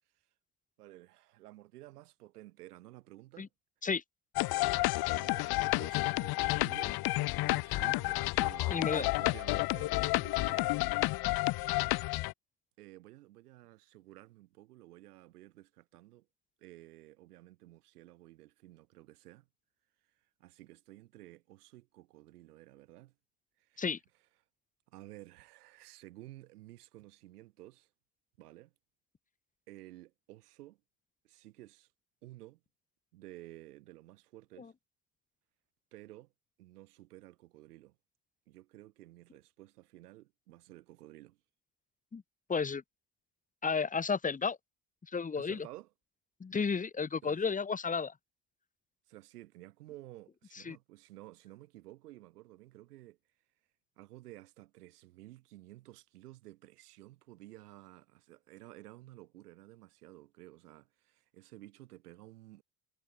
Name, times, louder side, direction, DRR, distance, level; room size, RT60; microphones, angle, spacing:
voice 1, 0.8-3.5 5.1-7.0 7.4-10.8 12.8-16.3 16.6-19.5 20.4-23.1 23.6-23.9 24.9-27.9 28.4-28.7 29.7-30.8 31.2-31.9 32.2-32.6 33.1-34.7 35.9-36.3 36.6-38.0 38.5-41.4 45.3-45.9 47.2-47.4 49.1-53.2 54.0-62.6, right 16 dB, 85° right, 3.2 m, -53 dB
sound 1, 4.4-12.3, left 20 dB, 55° left, 0.8 m, -30 dB
voice 2, 8.7-9.1 23.8-24.0 34.6-34.7 42.1-42.2 42.5-42.8 43.6-44.6 45.1-45.7 46.4-48.1 50.7-50.8, left 5 dB, 15° left, 1.0 m, -32 dB
hypercardioid pair, 70°, 45 cm